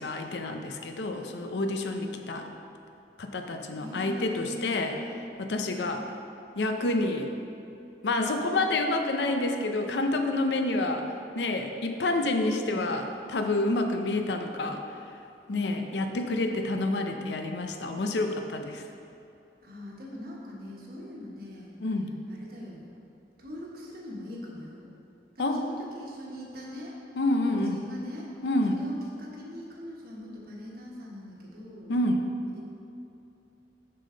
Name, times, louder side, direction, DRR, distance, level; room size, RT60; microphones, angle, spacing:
voice 1, 0.0-2.4 3.2-5.0 5.4-6.0 6.6-7.3 8.0-14.8 15.5-18.8 21.8-22.1 25.4-25.7 27.2-27.8 28.4-28.8 31.9-32.2, left 2 dB, 75° left, 5 dB, 0.5 m, -28 dB
voice 2, 3.8-5.2 5.8-6.0 15.5-15.9 19.6-21.7 22.3-22.9 23.4-24.9 25.3-26.9 27.4-28.3 28.7-31.9 32.4-32.6, left 1 dB, 55° right, -3 dB, 1.2 m, -41 dB
6.7 x 5.6 x 3.8 m, 2.7 s
head